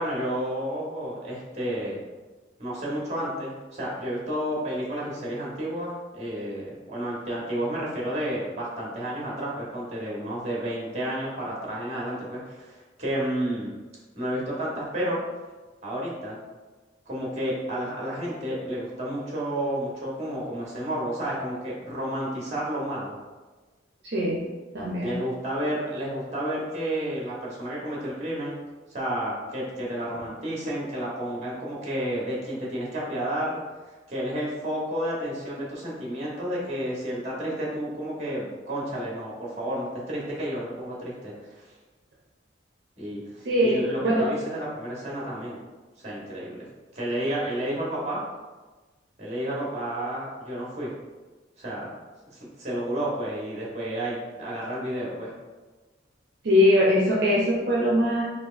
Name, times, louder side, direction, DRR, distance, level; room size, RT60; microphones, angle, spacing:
voice 1, 0.0-2.0 2.6-13.7 14.1-15.2 15.8-16.4 17.1-23.1 25.0-28.6 28.9-33.6 34.1-41.6 43.0-45.6 46.0-46.7 46.9-48.2 49.2-50.9 51.6-51.9 52.3-55.3, right 1 dB, 35° right, -5 dB, 1.2 m, -31 dB
voice 2, 24.0-24.4 24.7-25.2 43.4-44.3 56.4-58.2, left 1 dB, 60° right, -5 dB, 0.7 m, -21 dB
4.3 x 3.1 x 2.5 m, 1.3 s
head